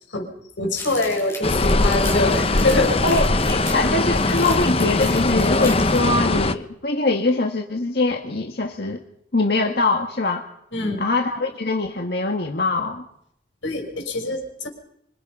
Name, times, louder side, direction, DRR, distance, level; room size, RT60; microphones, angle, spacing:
voice 1, 0.6-2.9 10.7-11.0 13.6-14.7, left 2 dB, 90° left, 3 dB, 6.4 m, -24 dB
sound 1, 0.7-6.0, left 3 dB, 15° left, 7.0 m, -37 dB
sound 2, 1.4-6.5, left 2 dB, 30° left, 1.0 m, -20 dB
voice 2, 3.0-9.0 9.3-10.4 11.0-13.0, left 2 dB, 55° left, 2 dB, 1.9 m, -23 dB
26.0 x 24.5 x 5.6 m, 0.73 s
head